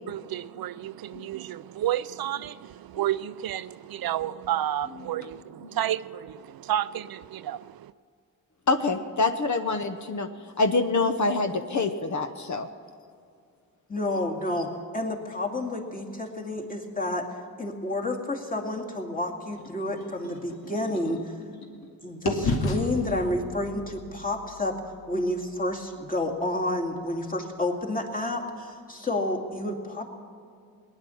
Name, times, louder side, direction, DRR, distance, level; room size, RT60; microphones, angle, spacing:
voice 1, 0.1-7.9, right 12 dB, 80° right, 0.5 m, -31 dB
voice 2, 8.7-10.3 10.6-12.7 21.6-21.8, left 3 dB, 50° left, 0.9 m, -26 dB
voice 3, 13.9-17.3 17.6-21.4 22.0-24.8 25.1-30.0, left 1 dB, 25° left, 2.3 m, -30 dB
sound 1, 19.6-21.9 22.3-26.2, left 2 dB, 85° left, 1.9 m, -34 dB
20.0 x 10.0 x 7.0 m
cardioid pair, 90°, 36 cm